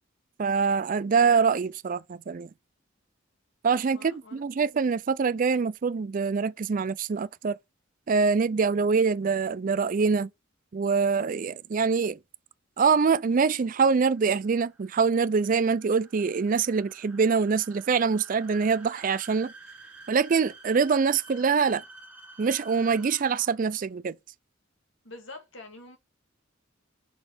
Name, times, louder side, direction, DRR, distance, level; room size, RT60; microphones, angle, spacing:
voice 1, 0.4-2.5 3.6-7.6 8.1-10.3 10.7-12.2 12.8-19.5 20.1-21.8 22.4-24.2, right 5 dB, 40° right, 0.4 m, -24 dB
voice 2, 3.9-4.4 25.0-26.0, left 2 dB, 70° left, 1.9 m, -45 dB
sound 1, 13.3-23.7, right 3 dB, 5° right, 1.4 m, -50 dB
6.1 x 4.2 x 4.9 m
head